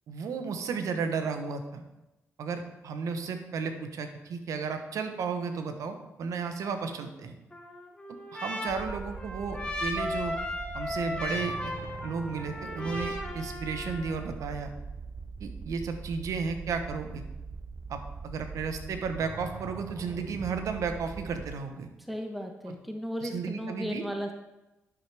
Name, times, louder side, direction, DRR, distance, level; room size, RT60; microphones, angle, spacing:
voice 1, 0.1-1.8 2.4-7.4 8.3-10.3 10.7-11.6 12.0-14.7 15.4-17.2 17.9-21.9 22.7-22.8 23.2-24.0, right 5 dB, 75° right, 7 dB, 1.0 m, -33 dB
Trumpet, 7.5-14.2, left 1 dB, 15° left, 2.9 m, -36 dB
sound 1, 8.7-21.5, right 4 dB, 35° right, 0.7 m, -42 dB
voice 2, 22.0-24.3, equal, ahead, 3 dB, 1.0 m, -35 dB
10.5 x 6.1 x 3.4 m, 0.98 s
supercardioid pair, 60°, 6 cm